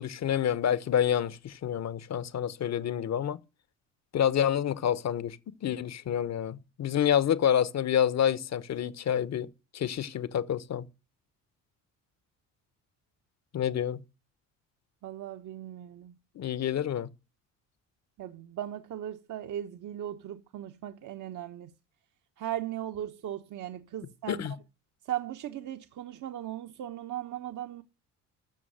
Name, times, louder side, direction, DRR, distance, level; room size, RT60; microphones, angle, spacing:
voice 1, 0.0-3.4 4.1-5.4 5.6-9.5 9.7-10.9 13.5-14.0 16.4-17.1 24.3-24.5, left 9 dB, 45° left, 1.2 m, -28 dB
voice 2, 15.0-16.2 18.2-21.7 22.4-24.5 25.1-27.8, right 11 dB, 50° right, 1.2 m, -38 dB
13.5 x 7.0 x 7.8 m
hypercardioid pair, 60°, 37 cm